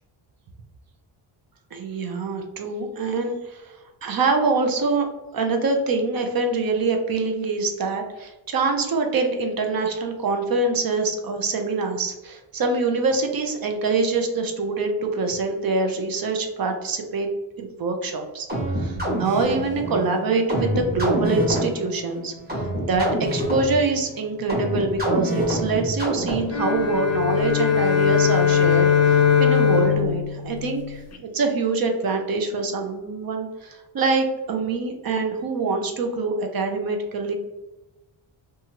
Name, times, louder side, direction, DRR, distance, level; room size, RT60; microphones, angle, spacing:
voice 1, 1.7-5.1 5.3-17.3 17.6-18.5 18.7-37.3, right 3 dB, 45° right, 4 dB, 0.5 m, -25 dB
sound 1, 18.5-26.7, equal, 20° right, 1.1 m, -27 dB
sound 2, 26.5-31.2, left 8 dB, 35° left, 0.4 m, -20 dB
2.7 x 2.4 x 2.8 m, 1.0 s
wide cardioid pair, 115°, 50 cm